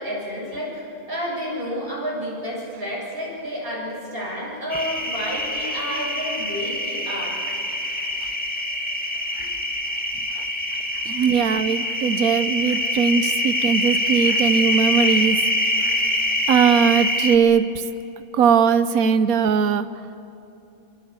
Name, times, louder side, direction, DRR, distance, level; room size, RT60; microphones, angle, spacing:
voice 1, 0.0-7.4, equal, 40° right, -3 dB, 7.9 m, -30 dB
sound 1, 4.7-17.4, left 1 dB, 5° left, 1.9 m, -24 dB
voice 2, 11.0-15.4 16.5-17.8 18.3-19.9, right 7 dB, 85° right, 12 dB, 1.2 m, -19 dB
26.0 x 25.0 x 8.2 m, 2.9 s
omnidirectional pair, 1.5 m